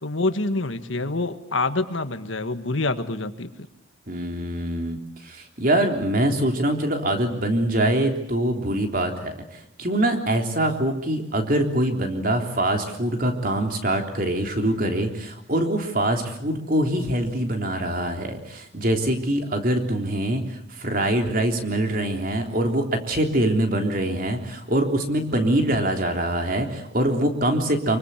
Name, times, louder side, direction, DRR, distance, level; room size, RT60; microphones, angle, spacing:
voice 1, 0.0-3.5 25.3-25.7, left 2 dB, 75° left, 9 dB, 1.7 m, -26 dB
voice 2, 4.1-9.4 9.8-28.0, right 1 dB, 45° right, 4 dB, 3.5 m, -24 dB
25.5 x 24.0 x 8.3 m, 0.76 s
head